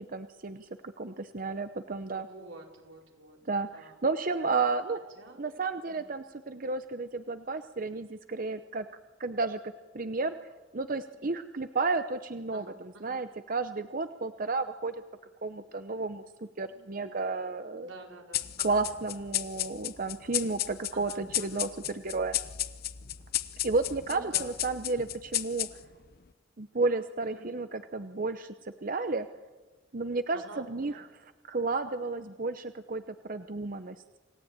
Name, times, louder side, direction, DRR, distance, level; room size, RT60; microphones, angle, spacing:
voice 1, 0.0-2.3 3.5-5.0 5.4-8.9 9.2-10.3 10.7-15.0 15.4-16.2 16.6-17.9 18.6-22.4 23.6-25.7 26.6-29.3 29.9-34.2, right 3 dB, 45° right, 10 dB, 0.8 m, -32 dB
voice 2, 2.1-4.0 5.2-5.6 5.9-6.1 12.5-13.2 17.8-18.8 20.9-21.7 24.1-24.6 27.2-27.5 30.3-31.0, right 2 dB, 90° right, 1 dB, 4.7 m, -49 dB
sound 1, 18.3-26.1, left 13 dB, 50° left, 0.8 m, -34 dB
28.0 x 17.5 x 8.9 m, 1.3 s
head